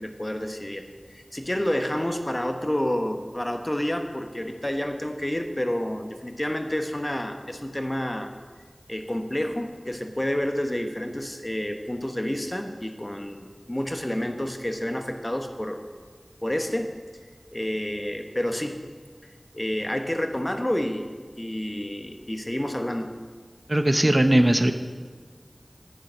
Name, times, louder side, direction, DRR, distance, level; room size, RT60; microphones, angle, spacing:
voice 1, 0.0-8.3 8.9-15.8 16.4-16.9 17.5-18.8 19.2-21.1 21.4-23.1, left 1 dB, 30° left, 5 dB, 1.1 m, -29 dB
voice 2, 23.7-24.7, right 1 dB, 35° right, 8 dB, 0.7 m, -19 dB
10.5 x 9.5 x 5.7 m, 1.5 s
wide cardioid pair, 45°, 0 cm